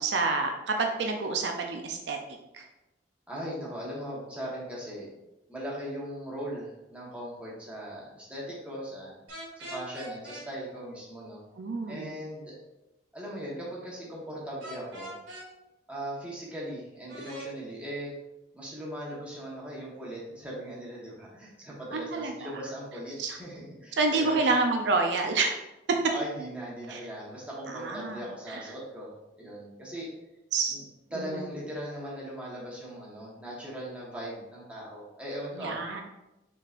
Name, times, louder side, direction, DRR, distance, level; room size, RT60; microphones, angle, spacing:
voice 1, 0.0-2.2 2.5-2.6 11.6-12.2 21.9-22.5 23.2-23.4 24.0-25.5 26.9-27.0 27.7-28.6 30.5-30.7 31.1-31.5 35.6-36.0, right 3 dB, 70° right, 3 dB, 0.5 m, -28 dB
voice 2, 3.3-5.1 5.5-9.1 9.5-11.4 11.9-12.5 13.1-15.1 15.9-18.1 18.5-24.5 26.1-30.1 30.7-30.8 31.1-35.8, equal, 5° right, -6 dB, 1.2 m, -39 dB
sound 1, 9.3-10.5 14.6-15.5 17.1-17.5, right 1 dB, 90° right, 1.5 m, -41 dB
5.4 x 3.8 x 2.5 m, 0.94 s
head